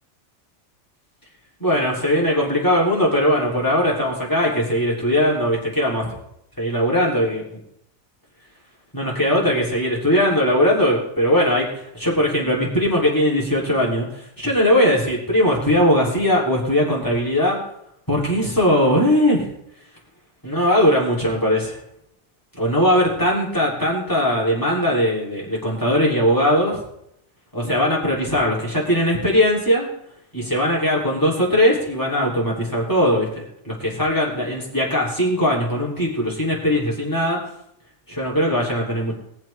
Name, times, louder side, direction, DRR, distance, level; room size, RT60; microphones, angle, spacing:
voice 1, 1.6-6.1 6.6-7.6 8.9-17.6 18.1-19.4 20.4-21.8 22.6-26.8 27.5-29.9 30.3-37.4 38.1-39.1, equal, 15° left, -3 dB, 3.4 m, -20 dB
22.0 x 7.3 x 3.5 m, 0.77 s
omnidirectional pair, 1.4 m